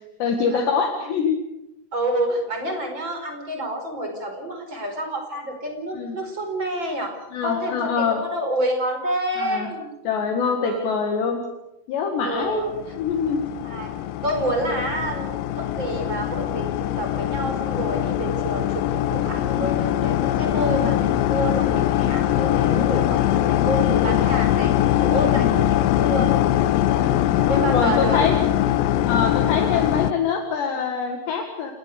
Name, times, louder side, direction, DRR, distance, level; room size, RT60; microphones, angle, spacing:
voice 1, 0.2-1.4 5.9-6.2 7.3-8.2 9.4-9.7 10.1-11.4 11.9-12.7 13.0-13.5 19.5-19.7 20.8-20.9 22.7-23.0 25.3-25.6 26.9-28.4 29.1-31.7, left 6 dB, 65° left, 4 dB, 3.8 m, -24 dB
voice 2, 1.9-7.2 7.4-10.1 10.6-10.9 12.2-12.7 13.6-13.9 14.2-24.7 25.0-26.3 26.9-28.2, right 1 dB, 25° right, 4 dB, 5.0 m, -28 dB
sound 1, 12.6-30.1, left 12 dB, 90° left, 3.7 m, -22 dB
29.0 x 19.5 x 6.8 m, 0.92 s
omnidirectional pair, 5.8 m